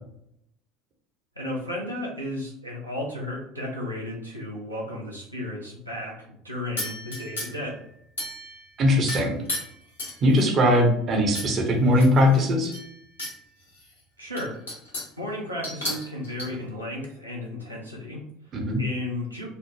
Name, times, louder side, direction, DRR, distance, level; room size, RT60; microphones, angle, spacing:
voice 1, 1.4-7.8 14.2-14.6 15.2-18.4 18.8-19.5, left 1 dB, 90° right, -3 dB, 0.5 m, -34 dB
sound 1, 6.8-7.7 8.2-8.7 9.1-10.6 11.3-11.5 11.9-13.4 13.8-13.9 14.4-15.2 15.6-16.5, left 1 dB, 75° left, 1.0 m, -34 dB
voice 2, 8.8-9.3 10.2-12.7 18.5-18.8, left 1 dB, 35° right, 1 dB, 0.6 m, -20 dB
3.1 x 2.0 x 2.8 m, 0.70 s
figure-of-eight pair, 65°, 0 cm